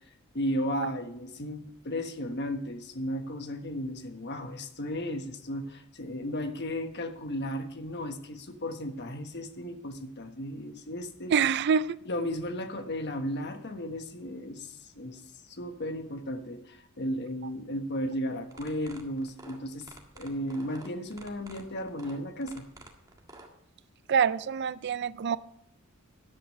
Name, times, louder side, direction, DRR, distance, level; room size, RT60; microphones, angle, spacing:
voice 1, 0.3-11.3 12.0-22.6, left 1 dB, 50° left, 7 dB, 1.3 m, -35 dB
voice 2, 11.3-12.0 24.1-25.4, right 7 dB, 50° right, 17 dB, 0.4 m, -26 dB
sound 1, 18.4-23.5, right 2 dB, 15° right, 1.7 m, -49 dB
13.5 x 10.5 x 3.2 m, 0.78 s
head